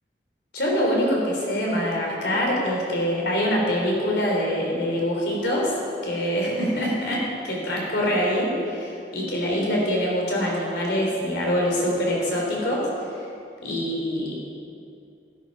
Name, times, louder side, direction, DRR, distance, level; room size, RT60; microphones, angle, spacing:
voice 1, 0.5-5.8 6.0-7.2 7.5-12.9 13.6-14.4, equal, 70° left, -2 dB, 3.7 m, -24 dB
13.0 x 13.0 x 5.6 m, 2.6 s
head